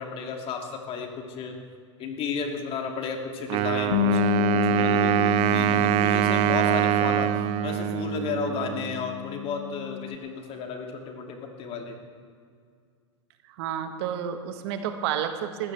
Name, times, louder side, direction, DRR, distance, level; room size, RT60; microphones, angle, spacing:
voice 1, 0.0-1.6 2.0-12.0, left 5 dB, 40° left, 2 dB, 2.6 m, -33 dB
Wind instrument woodwind instrument, 3.5-9.1, right 14 dB, 40° right, 0.5 m, -24 dB
Bass guitar, 3.9-10.2, left 12 dB, 55° left, 0.7 m, -30 dB
voice 2, 13.5-15.7, right 9 dB, 60° right, 8 dB, 1.4 m, -30 dB
20.0 x 15.0 x 3.4 m, 2.1 s
hypercardioid pair, 100°, 16 cm